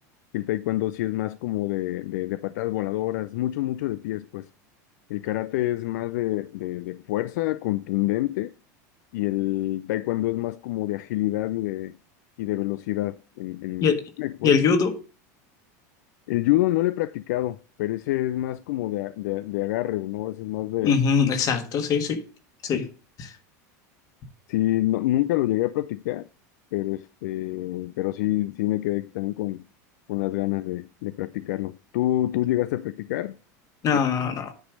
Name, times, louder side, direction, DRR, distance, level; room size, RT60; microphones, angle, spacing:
voice 1, 0.3-4.5 5.1-8.5 9.1-11.9 12.4-13.9 14.2-14.5 16.3-21.0 24.5-26.3 26.7-29.6 30.1-33.4, left 16 dB, 75° left, 0.4 m, -27 dB
voice 2, 14.4-15.0 20.8-22.2 22.6-22.9 23.2-23.3 33.8-34.5, left 6 dB, 40° left, 1.5 m, -22 dB
9.6 x 3.3 x 6.3 m
supercardioid pair, 120°, 9 cm